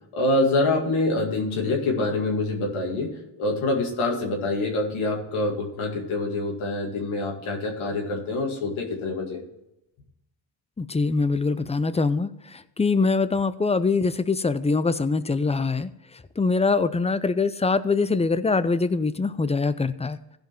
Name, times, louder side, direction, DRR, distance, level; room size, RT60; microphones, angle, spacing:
voice 1, 0.1-3.1 3.4-9.4, left 2 dB, 85° left, 0 dB, 2.2 m, -25 dB
voice 2, 10.8-15.9 16.4-20.4, left 4 dB, 15° left, 14 dB, 0.5 m, -23 dB
15.5 x 5.2 x 4.4 m, 0.91 s
cardioid pair, 75°, 48 cm